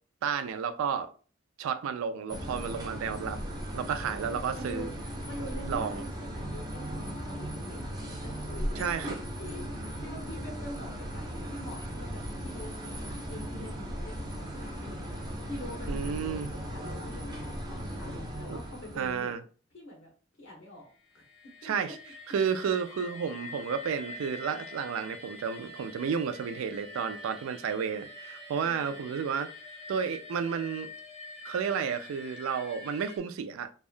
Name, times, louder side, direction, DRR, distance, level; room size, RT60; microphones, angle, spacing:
voice 1, 0.2-1.1 1.6-3.4 3.7-4.9 5.6-6.0 8.8-9.2 15.9-16.5 18.5-18.6 19.0-19.4 21.6-21.9 22.3-29.5 29.9-30.9 31.4-33.7, right 6 dB, 80° right, 0.3 m, -32 dB
sound 1, 2.3-19.3, equal, 20° right, 0.5 m, -37 dB
voice 2, 4.5-4.9 5.2-7.9 8.2-8.9 9.4-9.6 10.0-17.4 17.7-19.3 19.7-20.1 20.4-20.9 21.1-21.2 21.6-21.7 28.6-29.1, left 1 dB, 65° left, 0.9 m, -45 dB
sound 2, 20.9-33.2, left 2 dB, 30° left, 0.5 m, -46 dB
2.7 x 2.3 x 2.4 m
head